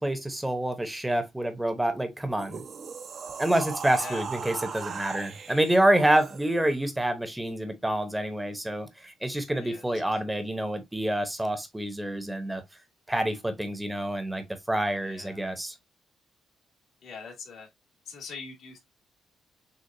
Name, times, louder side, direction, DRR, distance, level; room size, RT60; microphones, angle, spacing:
voice 1, 0.0-2.6 3.4-12.6 13.1-15.7, right 1 dB, 10° right, 0.9 m, -27 dB
sound 1, 2.2-6.8, right 5 dB, 55° right, 0.8 m, -38 dB
voice 2, 15.0-15.5 17.0-17.7 18.1-18.8, left 5 dB, 75° left, 2.0 m, -42 dB
6.6 x 2.5 x 2.6 m
cardioid pair, 90°, 0 cm